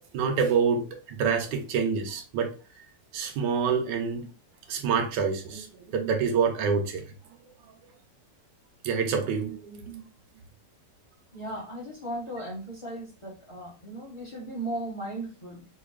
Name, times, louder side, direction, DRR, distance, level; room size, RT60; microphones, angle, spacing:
voice 1, 0.1-2.5 3.1-4.3 4.7-7.0 8.8-10.0, right 6 dB, 80° right, 3 dB, 1.4 m, -27 dB
voice 2, 11.3-15.7, right 1 dB, 20° left, -3 dB, 0.9 m, -36 dB
4.5 x 2.7 x 2.4 m, 0.35 s
omnidirectional pair, 1.9 m